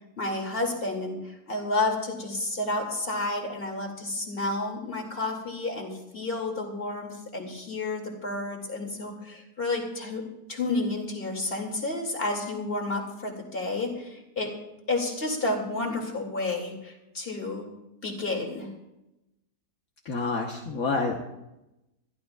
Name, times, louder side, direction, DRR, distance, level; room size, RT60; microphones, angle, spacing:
voice 1, 0.2-10.2 10.5-14.5 14.9-17.7 18.0-18.7, left 2 dB, 35° left, 1 dB, 2.6 m, -31 dB
voice 2, 20.0-21.2, left 4 dB, 65° left, 0 dB, 1.5 m, -28 dB
21.5 x 14.5 x 2.4 m, 0.91 s
omnidirectional pair, 1.6 m